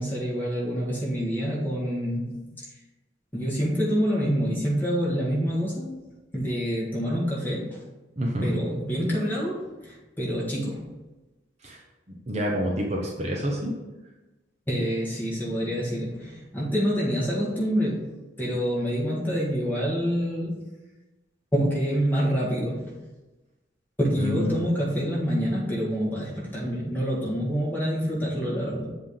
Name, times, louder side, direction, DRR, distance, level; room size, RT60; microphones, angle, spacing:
voice 1, 0.0-2.7 3.3-5.9 6.3-7.8 8.4-10.9 14.7-18.1 18.4-20.6 21.5-23.0 24.0-28.9, equal, 10° left, -6 dB, 1.8 m, -27 dB
voice 2, 8.2-8.5 11.6-11.8 12.1-13.7 24.2-24.6, equal, 35° right, -2 dB, 0.9 m, -28 dB
7.5 x 3.5 x 5.7 m, 1.1 s
head